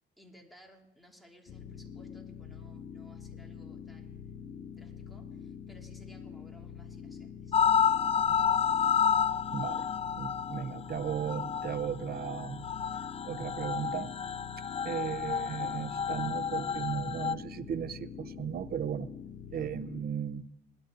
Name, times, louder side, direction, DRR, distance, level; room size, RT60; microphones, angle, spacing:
voice 1, 0.2-7.5 15.0-15.4 19.5-19.8, equal, ahead, 1 dB, 2.7 m, -59 dB
sound 1, 1.5-20.0, left 7 dB, 60° left, 1.8 m, -45 dB
sound 2, 7.5-17.3, left 7 dB, 30° left, 0.4 m, -30 dB
voice 2, 9.5-9.8 10.2-12.6 13.2-14.1 14.8-19.1 19.5-20.5, right 8 dB, 50° right, 16 dB, 0.7 m, -36 dB
20.0 x 11.5 x 3.8 m, 0.85 s
cardioid pair, 90°, 20 cm